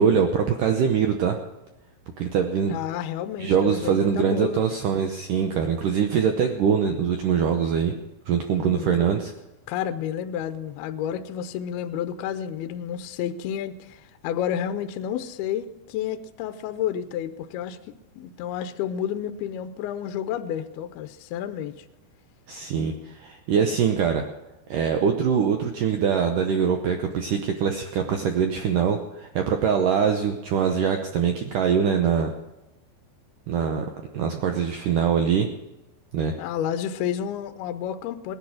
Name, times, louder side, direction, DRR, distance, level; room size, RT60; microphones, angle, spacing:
voice 1, 0.0-1.4 2.2-2.8 3.4-7.9 8.3-9.3 22.5-24.3 24.7-32.3 33.5-33.9 34.1-35.5 36.1-36.3, right 7 dB, 85° right, 4 dB, 1.9 m, -23 dB
voice 2, 2.7-4.7 8.6-8.9 9.7-21.7 36.4-38.4, left 9 dB, 80° left, 9 dB, 2.4 m, -30 dB
19.5 x 10.5 x 6.4 m, 0.96 s
omnidirectional pair, 5.1 m